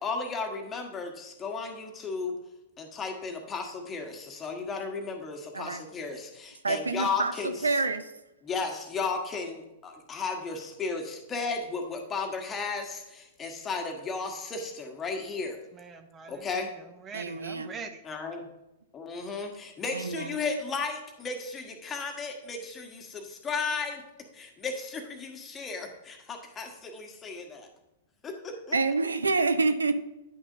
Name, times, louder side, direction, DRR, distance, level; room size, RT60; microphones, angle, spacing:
voice 1, 0.0-2.3 2.8-7.7 8.4-15.6 16.3-16.7 18.0-18.4 18.9-24.0 24.3-27.7 28.2-28.7, left 4 dB, 20° left, 4 dB, 1.4 m, -34 dB
voice 2, 6.6-7.3 7.6-8.1 17.1-17.7 19.9-20.4 28.7-29.9, right 3 dB, 85° right, 11 dB, 0.5 m, -27 dB
voice 3, 15.7-18.0, right 5 dB, 25° right, 8 dB, 0.7 m, -43 dB
10.0 x 6.2 x 2.6 m, 0.94 s
figure-of-eight pair, 105°, 0 cm